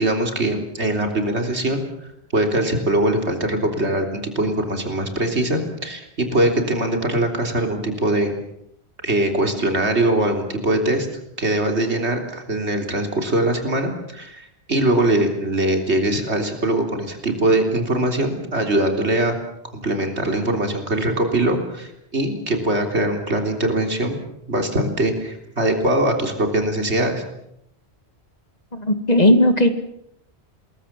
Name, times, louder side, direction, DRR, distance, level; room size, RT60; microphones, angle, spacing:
voice 1, 0.0-1.8 2.3-8.3 9.0-11.1 11.4-19.4 19.7-24.2 24.5-27.2, right 1 dB, 80° right, 4 dB, 3.8 m, -22 dB
voice 2, 28.7-29.7, left 1 dB, 35° left, 9 dB, 2.1 m, -16 dB
27.0 x 21.0 x 7.5 m, 0.78 s
omnidirectional pair, 1.1 m